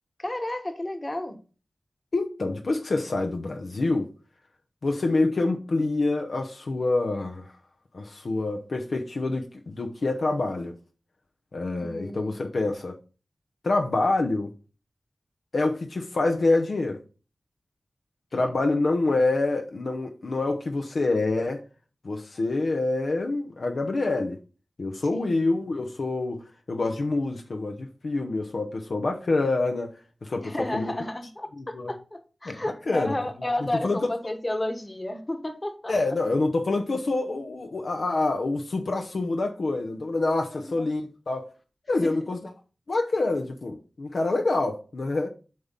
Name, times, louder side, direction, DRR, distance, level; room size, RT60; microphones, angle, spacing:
voice 1, 0.2-1.4 11.8-12.6 18.3-18.5 25.1-25.4 30.4-35.9 40.5-40.9 42.0-42.1, left 1 dB, 30° left, 1.4 m, -32 dB
voice 2, 2.1-4.1 4.8-7.5 7.9-10.7 11.5-12.9 13.6-14.5 15.5-17.0 18.3-21.6 22.0-24.4 24.8-29.9 30.2-30.9 31.6-31.9 32.4-32.6 32.9-33.1 33.8-34.0 35.9-41.5 41.9-42.4 42.9-45.3, left 2 dB, 70° left, 0.8 m, -26 dB
7.7 x 3.6 x 5.6 m
cardioid pair, 55°, 0 cm